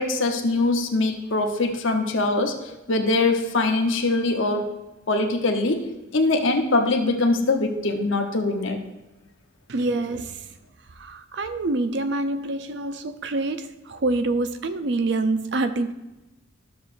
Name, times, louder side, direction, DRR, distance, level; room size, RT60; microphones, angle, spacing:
voice 1, 0.0-4.7 5.1-5.8 6.1-8.8, left 2 dB, 65° left, 1.0 m, -22 dB
voice 2, 9.7-10.5 10.9-15.9, right 2 dB, 55° right, 0.5 m, -26 dB
12.0 x 7.0 x 2.6 m
head